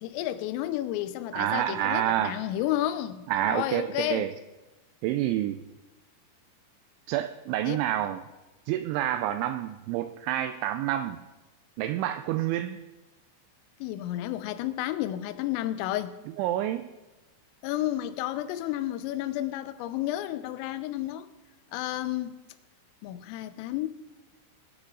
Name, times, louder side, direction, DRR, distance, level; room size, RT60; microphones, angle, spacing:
voice 1, 0.0-4.3 7.6-7.8 13.8-16.2 17.6-21.3 21.7-22.4 23.0-23.9, left 13 dB, 85° left, 3.3 m, -31 dB
voice 2, 1.3-2.4 3.3-4.3 5.0-5.6 7.1-8.2 8.7-11.2 11.8-12.8 16.4-16.9, right 12 dB, 85° right, 2.7 m, -28 dB
21.0 x 11.5 x 3.8 m
omnidirectional pair, 5.8 m